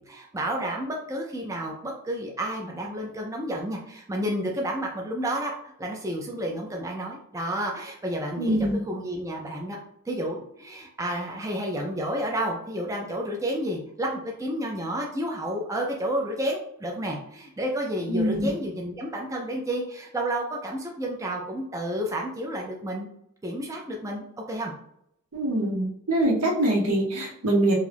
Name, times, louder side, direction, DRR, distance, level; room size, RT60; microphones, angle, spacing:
voice 1, 0.1-9.8 10.1-23.1 23.4-24.7, right 1 dB, 15° right, 0 dB, 0.4 m, -31 dB
voice 2, 8.4-8.8 18.1-18.5 25.3-27.7, right 1 dB, 80° right, 0 dB, 0.8 m, -24 dB
2.5 x 2.3 x 3.3 m, 0.73 s
head